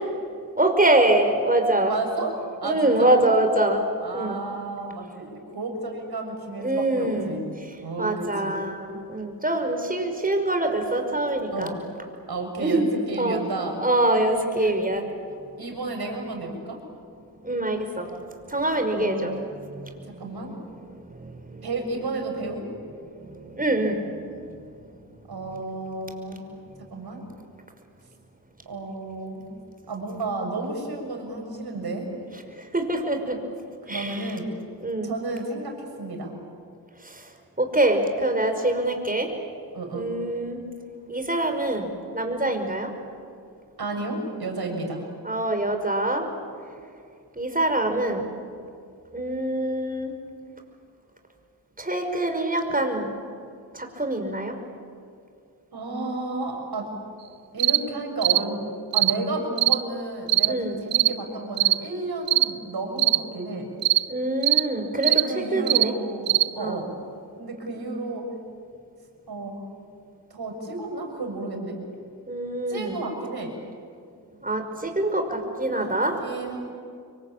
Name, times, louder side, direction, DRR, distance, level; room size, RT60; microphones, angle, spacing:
voice 1, 0.6-1.9 2.6-3.8 4.1-4.4 6.6-7.4 8.0-11.7 12.6-12.9 13.2-13.4 13.8-15.0 17.4-18.1 18.5-19.3 19.7-20.1 21.2-21.6 23.2-24.1 32.6-33.4 33.9-34.3 34.8-35.1 37.1-37.2 37.6-39.3 39.9-40.6 41.1-42.9 45.2-46.3 47.4-48.3 49.1-50.1 51.8-53.1 53.7-54.5 60.5-60.8 64.1-65.2 65.5-65.9 66.6-66.8 72.3-73.0 74.4-76.2, right 1 dB, 20° right, 5 dB, 5.7 m, -24 dB
voice 2, 1.9-3.1 4.0-7.4 7.8-8.6 11.5-11.8 12.3-13.8 14.6-14.8 15.6-16.8 18.9-19.3 20.1-20.5 21.6-22.7 25.3-26.4 26.9-27.2 28.7-29.5 29.9-32.1 33.8-34.5 35.0-36.3 39.7-40.1 43.8-45.1 55.7-56.9 57.5-58.6 58.9-63.7 64.9-66.9 67.4-68.3 69.3-69.6 70.3-71.8 72.7-73.5 75.7-76.7, right 2 dB, 60° right, 3 dB, 7.0 m, -32 dB
sound 1, 57.6-57.8 58.2-58.4 58.9-59.2 59.6-59.8 60.3-60.5 60.9-61.1 61.6-61.8 62.3-62.5 63.0-63.2 63.8-64.0 64.4-64.7 65.0-65.3 65.7-65.9 66.3-66.5, right 16 dB, 90° right, 0.7 m, -20 dB
26.5 x 23.5 x 9.0 m, 2.4 s
supercardioid pair, 45°, 42 cm